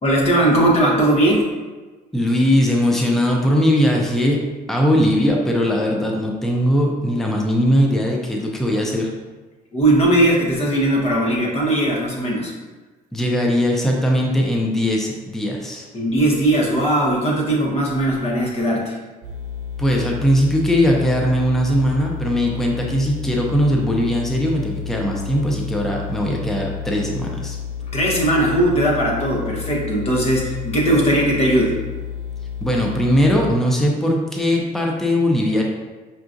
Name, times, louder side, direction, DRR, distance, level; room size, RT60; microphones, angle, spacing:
voice 1, 0.0-1.5 9.7-12.5 15.9-19.0 27.9-31.8, right 1 dB, 40° left, -3 dB, 1.1 m, -18 dB
voice 2, 2.1-9.1 13.1-15.9 19.8-27.6 32.6-35.6, equal, ahead, -1 dB, 0.5 m, -19 dB
sound 1, 19.2-33.5, left 8 dB, 90° right, 0.6 m, -31 dB
5.6 x 2.4 x 2.5 m, 1.3 s
cardioid pair, 110°, 17 cm